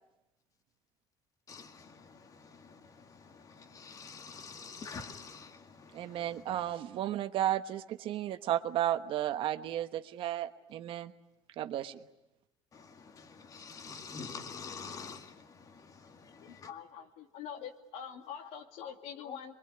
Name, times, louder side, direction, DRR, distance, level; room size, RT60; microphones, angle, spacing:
voice 1, 1.5-6.7 12.7-16.7, left 5 dB, 35° left, 2.1 m, -47 dB
voice 2, 5.9-11.1 11.6-12.0, right 12 dB, 55° right, 1.2 m, -33 dB
voice 3, 16.4-19.6, left 8 dB, 80° left, 2.4 m, -44 dB
25.0 x 23.5 x 9.8 m
cardioid pair, 150°, 11 cm